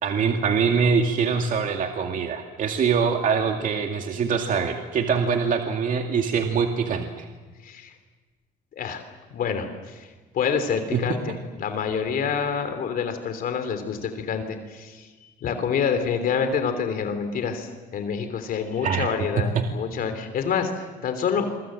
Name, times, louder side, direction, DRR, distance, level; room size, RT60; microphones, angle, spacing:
voice 1, 0.0-7.3 10.9-11.0 18.8-19.7, right 6 dB, 50° right, 4 dB, 2.3 m, -24 dB
voice 2, 7.6-7.9 8.8-9.0 9.3-21.5, left 6 dB, 60° left, 8 dB, 3.2 m, -27 dB
27.5 x 24.5 x 7.7 m, 1.3 s
cardioid pair, 110°, 17 cm